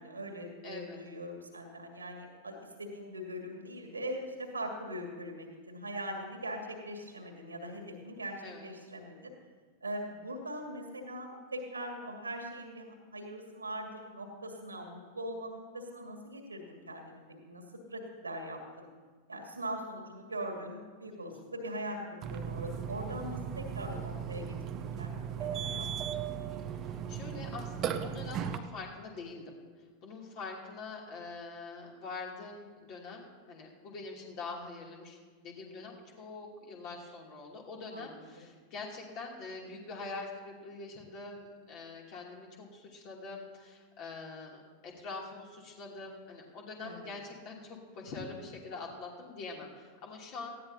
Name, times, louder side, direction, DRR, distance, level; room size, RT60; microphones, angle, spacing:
voice 1, 0.0-9.3 9.8-18.9 19.3-26.2 37.9-38.3 46.8-47.1, right 1 dB, 80° right, 2 dB, 2.1 m, -41 dB
voice 2, 0.6-1.0 8.4-8.7 21.3-21.4 26.6-29.6 30.0-35.2 35.4-50.5, left 3 dB, 40° left, -1 dB, 2.8 m, -44 dB
Burping eructation, 22.2-28.6, right 8 dB, 35° right, 0.7 m, -37 dB
18.5 x 14.5 x 2.8 m, 1.5 s
figure-of-eight pair, 90°, 0 cm